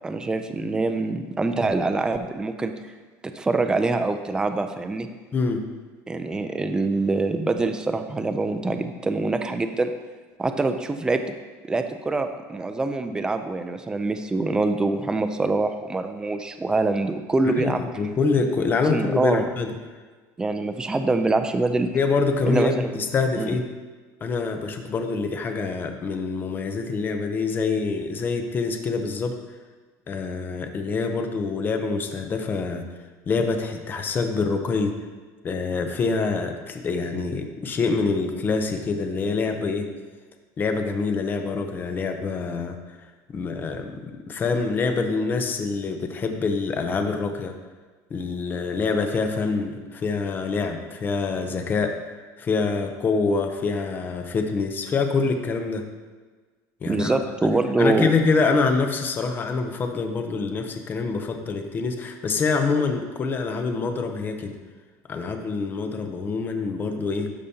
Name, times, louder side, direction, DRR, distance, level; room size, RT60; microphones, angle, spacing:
voice 1, 0.0-2.7 3.3-5.1 6.1-9.9 10.4-11.2 11.7-17.8 18.9-19.5 20.4-21.9 22.5-22.9 23.4-23.6 56.9-58.1, right 3 dB, 10° right, 7 dB, 0.4 m, -24 dB
voice 2, 5.3-5.6 17.4-19.8 21.9-23.7 24.2-29.4 30.1-32.8 33.3-35.0 35.4-39.9 40.6-42.8 43.3-47.5 48.1-52.0 52.4-55.8 56.8-57.3 57.8-64.6 65.1-67.3, left 4 dB, 25° left, 6 dB, 0.7 m, -25 dB
12.5 x 5.0 x 2.8 m, 1.4 s
cardioid pair, 145°, 8 cm